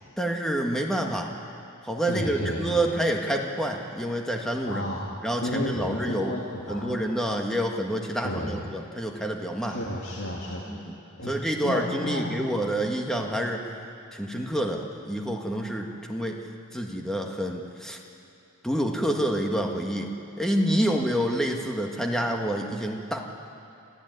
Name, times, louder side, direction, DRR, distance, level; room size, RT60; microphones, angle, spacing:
voice 1, 0.2-1.3 1.8-4.9 5.2-6.3 6.7-9.8 10.7-10.9 11.3-13.7 14.1-16.4 16.7-18.0 18.6-23.2, right 1 dB, ahead, 1 dB, 1.6 m, -28 dB
voice 2, 2.1-2.9 4.7-5.1 5.4-6.9 8.2-8.6 9.6-10.6 11.2-11.3 11.6-12.4, equal, 55° left, -4 dB, 2.4 m, -32 dB
26.5 x 15.0 x 9.4 m, 2.7 s
head